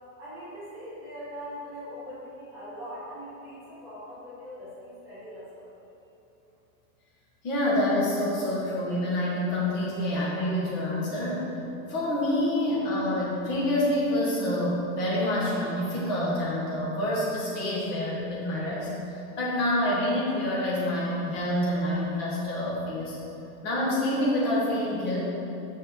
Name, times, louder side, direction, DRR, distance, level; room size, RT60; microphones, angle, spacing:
voice 1, 0.2-5.7, equal, 5° right, -12 dB, 0.4 m, -41 dB
voice 2, 7.4-11.6 11.9-23.2 23.6-25.3, left 1 dB, 25° left, -6 dB, 1.4 m, -27 dB
5.9 x 5.2 x 4.2 m, 2.8 s
supercardioid pair, 175°, 41 cm